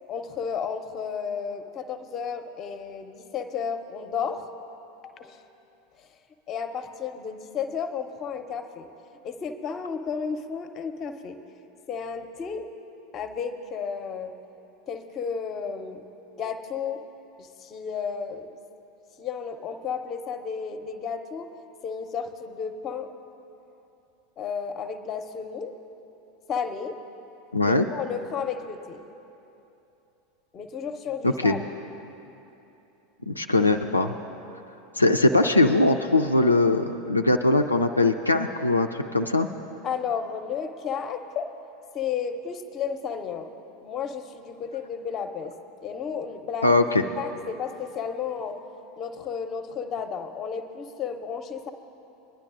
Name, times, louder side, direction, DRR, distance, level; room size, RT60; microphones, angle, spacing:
voice 1, 0.1-4.4 5.0-5.4 6.0-6.1 6.5-8.9 9.2-11.4 11.9-12.7 13.1-14.3 14.9-16.0 16.4-17.0 17.4-18.5 19.2-21.5 21.8-23.1 24.4-25.7 26.5-27.0 27.6-29.0 30.5-31.6 39.8-41.5 41.9-43.5 43.8-45.5 45.8-46.7 47.2-48.5 49.0-51.7, left 6 dB, 35° left, 8 dB, 0.7 m, -32 dB
voice 2, 27.5-27.9 31.2-31.6 33.3-34.1 35.0-39.5 46.6-47.0, left 2 dB, 90° left, 4 dB, 0.3 m, -21 dB
21.5 x 10.5 x 2.5 m, 2.9 s
figure-of-eight pair, 80°, 0 cm